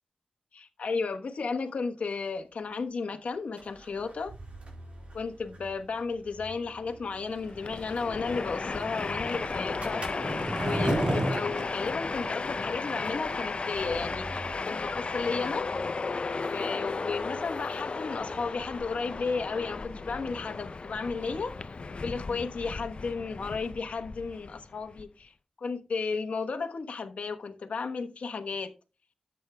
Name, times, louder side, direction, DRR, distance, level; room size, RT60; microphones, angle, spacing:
voice 1, 0.5-4.3 5.1-10.1 10.5-15.7 16.3-21.7 22.0-28.7, left 4 dB, 90° left, 1.1 m, -34 dB
sound 1, 2.0-2.1 2.3-2.4 3.3-12.3 13.0-20.4, right 2 dB, 60° right, 4.2 m, -50 dB
Train, 7.4-25.0, left 4 dB, 55° left, 0.5 m, -35 dB
Skateboard, 7.7-13.1, right 1 dB, 40° right, 1.9 m, -34 dB
13.0 x 8.2 x 2.2 m
wide cardioid pair, 65°, 2 cm